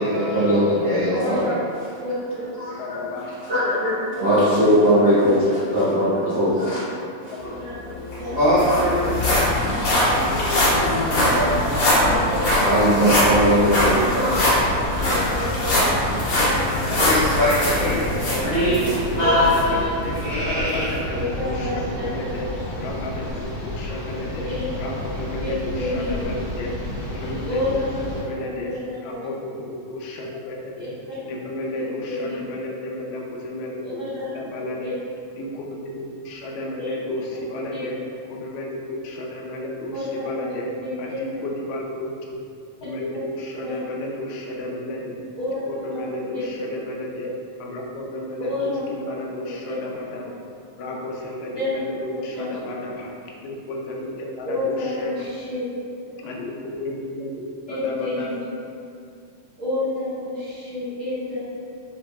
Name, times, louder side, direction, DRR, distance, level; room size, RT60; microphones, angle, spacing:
voice 1, 0.0-1.5 2.6-9.3 9.8-10.0 10.4-19.9, equal, 85° right, -15 dB, 0.9 m, -22 dB
voice 2, 1.1-1.5 2.0-2.1 4.1-4.2 5.2-5.3 7.4-7.7 8.2-8.4 9.0-9.1 11.1-11.5 12.1-12.6 14.2-14.4 15.1-15.7 17.8-18.2 19.2-19.3 19.7-19.9 21.1-22.0 22.5-22.6 24.4-24.6 25.4-25.5 25.8-26.3 27.4-27.9 28.3-29.6 30.8-30.9 31.7-32.3 33.8-34.3 34.8-34.9 36.8-36.9 37.7-37.8 39.9-40.5 40.8-41.2 43.6-43.8 45.4-45.6 45.9-46.1 46.3-46.4 48.4-48.9 49.7-50.3 51.5-51.7 52.3-52.5 54.4-55.6 57.7-58.4 59.6-61.4, left 2 dB, 50° right, -14 dB, 0.9 m, -30 dB
voice 3, 2.8-3.3 6.0-6.1 6.5-6.8 8.6-8.9 10.1-10.8 11.8-12.4 14.9-15.0 16.0-16.1 16.8-17.0 18.3-20.1 20.4-22.5 22.8-24.5 24.8-26.7 27.1-27.6 28.3-28.7 29.0-30.7 31.3-34.0 34.3-34.9 35.4-38.0 38.3-40.7 41.0-42.4 42.8-45.2 45.7-47.3 47.6-50.3 50.8-53.1 53.4-55.1 56.2-58.3, left 1 dB, 80° left, -2 dB, 1.7 m, -33 dB
sound 1, 7.8-7.9 8.1-19.0 19.5-19.6 20.2-20.3, left 1 dB, 60° left, 2.1 m, -22 dB
sound 2, 9.2-28.2, left 1 dB, 45° left, 0.8 m, -30 dB
5.5 x 2.1 x 2.2 m, 2.4 s
omnidirectional pair, 3.5 m